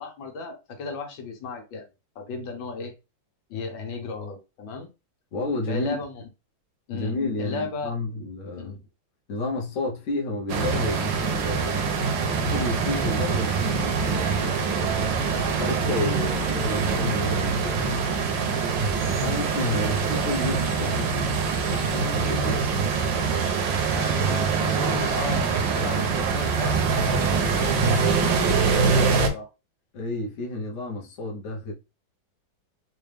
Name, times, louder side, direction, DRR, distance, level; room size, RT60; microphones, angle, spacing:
voice 1, 0.0-1.9 2.1-2.9 3.5-4.9 5.7-6.2 6.9-8.0 8.6-8.8 22.4-22.8 23.8-27.3 27.8-29.5 31.2-31.3, left 4 dB, 75° left, 1.7 m, -35 dB
voice 2, 5.3-5.9 6.9-8.8 9.3-11.9 12.4-15.0 15.5-18.0 19.2-21.3 21.6-22.6 29.9-31.7, left 2 dB, 50° left, 1.0 m, -31 dB
sound 1, 10.5-29.3, right 5 dB, 75° right, 1.4 m, -24 dB
4.2 x 2.4 x 3.3 m
omnidirectional pair, 2.1 m